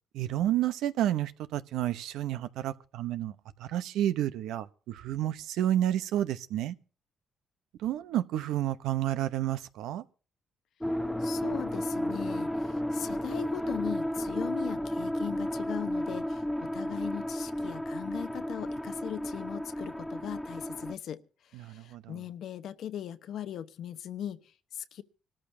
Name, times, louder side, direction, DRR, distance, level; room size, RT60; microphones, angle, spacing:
voice 1, 0.1-6.7 7.8-10.0 21.5-22.2, right 12 dB, 90° right, 0.8 m, -30 dB
sound 1, 10.8-20.9, left 1 dB, 5° left, 0.7 m, -33 dB
voice 2, 11.2-25.0, left 10 dB, 75° left, 1.0 m, -39 dB
25.5 x 13.5 x 2.7 m
cardioid pair, 90°, 0 cm